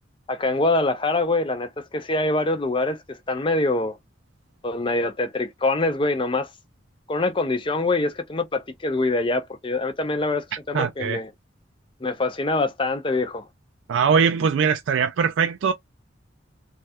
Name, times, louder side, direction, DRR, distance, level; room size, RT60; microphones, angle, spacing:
voice 1, 0.3-4.0 4.6-6.5 7.1-11.3 12.0-13.5, left 2 dB, 25° left, 0.5 m, -24 dB
voice 2, 10.7-11.2 13.9-15.7, right 6 dB, 80° right, 0.3 m, -21 dB
3.2 x 2.3 x 2.8 m
head